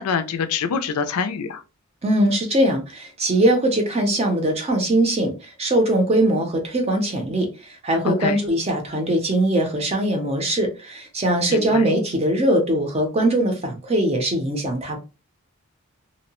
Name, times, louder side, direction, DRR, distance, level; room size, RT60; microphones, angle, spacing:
voice 1, 0.0-1.6 8.0-8.4 11.5-11.9, left 6 dB, 80° left, 0.4 m, -25 dB
voice 2, 2.0-15.0, right 1 dB, 30° right, 0.6 m, -21 dB
2.7 x 2.1 x 2.8 m
head